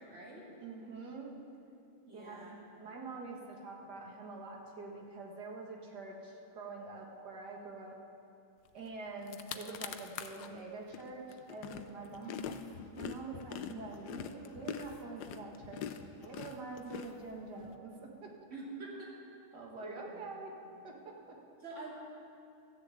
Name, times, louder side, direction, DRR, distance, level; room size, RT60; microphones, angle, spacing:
voice 1, 0.0-0.5 2.1-2.5 12.2-12.5 18.5-19.1 19.8-20.4 21.6-21.9, right 2 dB, 35° right, -5 dB, 2.9 m, -46 dB
voice 2, 0.6-1.3 2.1-8.0 8.7-12.4 13.0-18.3 19.5-20.5 20.8-21.4, right 3 dB, 55° right, 0 dB, 2.1 m, -46 dB
sound 1, 8.9-9.0 9.2-10.5 10.9-17.7, left 8 dB, 75° left, 1.0 m, -44 dB
14.0 x 7.0 x 8.3 m, 2.6 s
omnidirectional pair, 2.3 m